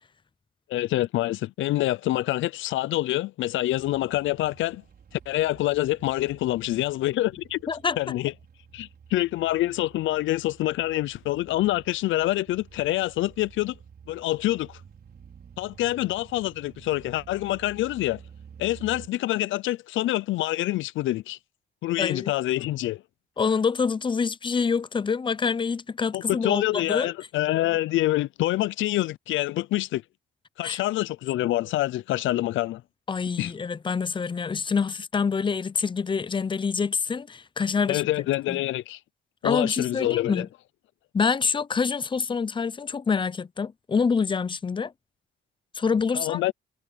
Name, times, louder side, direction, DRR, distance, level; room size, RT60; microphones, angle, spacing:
voice 1, 0.7-4.8 5.1-7.6 8.0-8.3 8.7-13.7 14.1-14.8 15.6-18.2 18.6-21.4 21.8-23.0 26.1-30.0 30.6-32.8 33.4-33.5 37.9-39.0 39.4-40.4 46.1-46.5, left 16 dB, 80° left, 0.5 m, -26 dB
sound 1, 3.7-19.1, right 7 dB, 50° right, 5.7 m, -51 dB
voice 2, 7.7-8.0 22.0-22.3 23.4-27.1 30.6-30.8 33.1-38.0 38.5-38.6 39.4-40.5 41.1-44.9 45.7-46.4, left 5 dB, 25° left, 0.6 m, -26 dB
cardioid pair, 90°, 20 cm